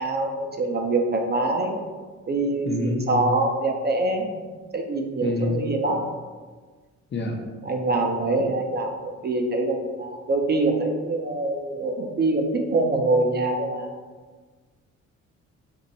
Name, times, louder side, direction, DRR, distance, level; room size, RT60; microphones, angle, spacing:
voice 1, 0.0-1.8 2.3-4.4 4.7-6.0 7.6-13.9, right 2 dB, 35° right, 3 dB, 0.6 m, -24 dB
voice 2, 2.7-3.3 5.2-5.7 7.1-7.4, left 2 dB, 35° left, 2 dB, 0.6 m, -27 dB
5.2 x 2.1 x 4.0 m, 1.4 s
cardioid pair, 90°, 30 cm